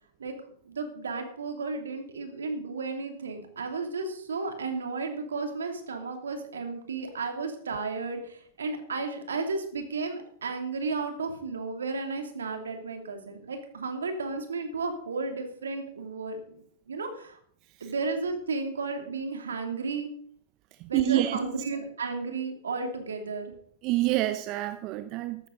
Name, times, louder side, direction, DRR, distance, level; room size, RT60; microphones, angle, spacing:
voice 1, 0.2-17.4 17.8-20.1 20.9-23.5, right 4 dB, 80° right, 5 dB, 2.8 m, -33 dB
voice 2, 20.8-21.4 23.8-25.5, right 16 dB, 45° right, 10 dB, 0.9 m, -27 dB
14.0 x 12.5 x 4.0 m, 0.63 s
hypercardioid pair, 100°, 0 cm